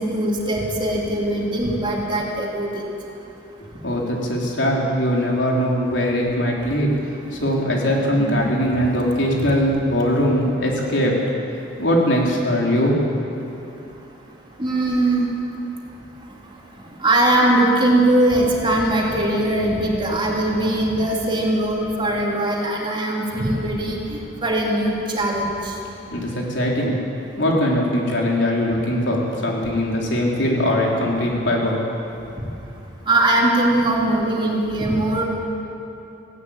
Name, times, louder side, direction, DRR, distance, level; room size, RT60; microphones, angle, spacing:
voice 1, 0.0-2.7 8.2-8.5 14.6-15.3 17.0-25.5 33.1-35.2, right 1 dB, 25° right, -2 dB, 3.1 m, -20 dB
voice 2, 3.8-11.2 11.8-13.0 26.1-27.0 27.4-31.8 32.3-32.4, equal, 75° left, -2 dB, 3.8 m, -21 dB
18.0 x 16.5 x 8.9 m, 2.8 s
head